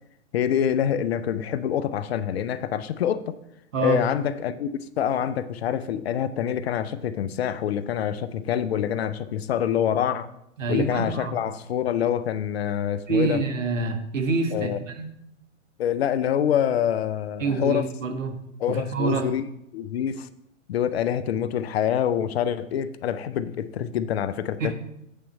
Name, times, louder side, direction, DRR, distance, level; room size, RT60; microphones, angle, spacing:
voice 1, 0.3-3.4 3.8-10.3 10.7-13.4 14.5-14.8 15.8-17.9 18.6-19.4 19.7-20.3 20.7-24.7, left 9 dB, 50° left, 0.6 m, -26 dB
voice 2, 10.6-11.3 13.1-15.1 17.4-18.3 18.7-19.3 24.6-24.7, right 3 dB, 75° right, 1.5 m, -26 dB
8.5 x 4.4 x 6.2 m
hypercardioid pair, 120°, 39 cm